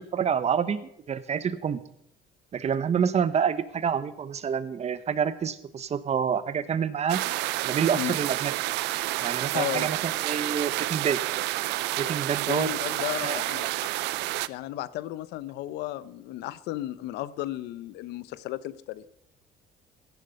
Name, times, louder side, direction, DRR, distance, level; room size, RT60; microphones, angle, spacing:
voice 1, 0.0-1.8 2.5-7.2 7.6-8.5 9.2-10.0 10.2-11.2 12.0-12.7 13.2-13.4, right 7 dB, 40° right, 14 dB, 1.1 m, -27 dB
sound 1, 7.1-14.5, right 18 dB, 90° right, 0.5 m, -29 dB
voice 2, 9.5-9.9 12.5-13.9 14.5-19.1, left 15 dB, 85° left, 17 dB, 0.7 m, -34 dB
16.0 x 11.0 x 5.3 m, 0.76 s
cardioid pair, 110°, 17 cm